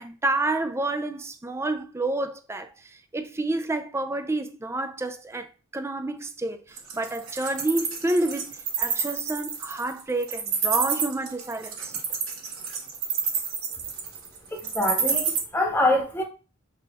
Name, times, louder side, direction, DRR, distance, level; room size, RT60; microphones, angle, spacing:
voice 1, 0.0-5.5 5.7-11.9, right 2 dB, 10° right, 0.3 m, -29 dB
Wild animals, 6.8-15.4, right 6 dB, 80° right, 1.2 m, -28 dB
voice 2, 14.5-16.2, left 1 dB, 10° left, 1.0 m, -25 dB
6.8 x 2.9 x 2.3 m
head